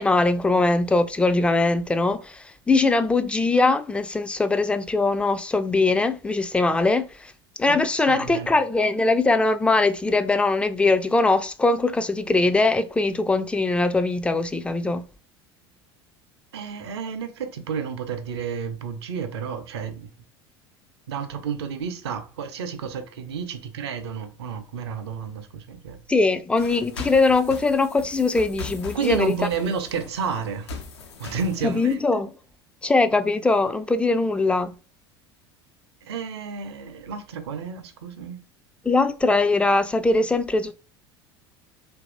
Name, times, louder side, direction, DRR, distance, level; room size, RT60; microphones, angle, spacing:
voice 1, 0.0-7.3 7.6-15.0 26.1-29.3 31.6-32.3 32.8-34.7 38.8-40.7, left 3 dB, 10° left, 0.3 m, -21 dB
voice 2, 7.7-8.5 16.5-20.1 21.1-26.0 28.9-30.7 31.2-32.0 36.0-38.4, right 6 dB, 75° right, 0.6 m, -31 dB
sound 1, 26.6-31.9, left 4 dB, 80° left, 0.5 m, -39 dB
2.8 x 2.6 x 2.5 m
figure-of-eight pair, 75°, 14 cm